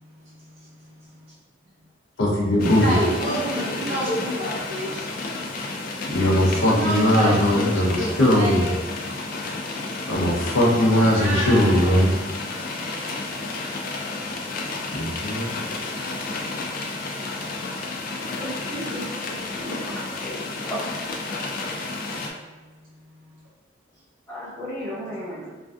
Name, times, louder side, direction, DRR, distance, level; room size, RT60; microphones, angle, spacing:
voice 1, 0.2-0.7 1.0-1.1 2.8-5.3 6.5-8.7 10.9-12.0 13.0-13.1, equal, 75° right, -8 dB, 0.5 m, -29 dB
voice 2, 2.2-3.0 6.1-8.7 10.0-12.1 14.9-15.5, left 1 dB, 90° left, -2 dB, 0.6 m, -19 dB
sound 1, 2.6-22.3, left 3 dB, 45° left, 0.3 m, -31 dB
voice 3, 2.8-4.1 18.4-19.7 20.2-20.8 24.3-25.5, equal, 15° left, -12 dB, 0.9 m, -32 dB
2.5 x 2.2 x 2.3 m, 1.2 s
head